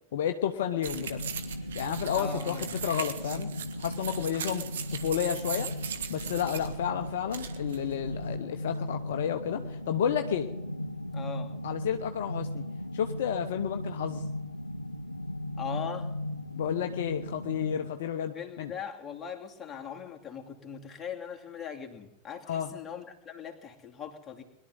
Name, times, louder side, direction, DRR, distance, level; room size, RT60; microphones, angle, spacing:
voice 1, 0.1-1.2 1.7-3.5 3.8-4.7 4.9-5.7 6.1-10.5 11.6-12.6 12.9-14.2 16.5-18.7 22.5-22.7, left 9 dB, 55° left, 6 dB, 0.9 m, -31 dB
sound 1, 0.8-8.4, right 8 dB, 60° right, 1.6 m, -39 dB
sound 2, 0.9-17.9, left 1 dB, 85° left, 0.7 m, -37 dB
voice 2, 2.1-2.6 11.1-11.5 15.6-16.1 18.3-24.4, left 7 dB, 20° left, 1 dB, 2.7 m, -40 dB
22.0 x 12.5 x 3.9 m, 0.94 s
figure-of-eight pair, 90°, 0 cm